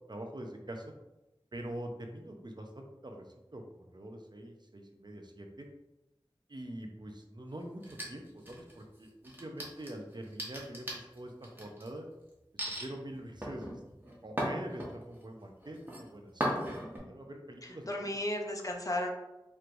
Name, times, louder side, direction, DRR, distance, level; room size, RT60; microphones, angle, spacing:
voice 1, 0.1-0.8 1.5-3.2 3.5-5.7 6.5-12.0 12.7-13.8 14.2-18.2, right 1 dB, 50° right, 2 dB, 0.6 m, -44 dB
sound 1, 7.8-8.8 9.2-11.9 12.6-12.9 13.4-15.2 15.6-16.0 16.4-17.0, equal, 20° right, 1.1 m, -37 dB
voice 2, 17.6-19.1, left 1 dB, 35° left, 1 dB, 0.6 m, -34 dB
4.5 x 3.2 x 2.6 m, 0.97 s
wide cardioid pair, 45°, 9 cm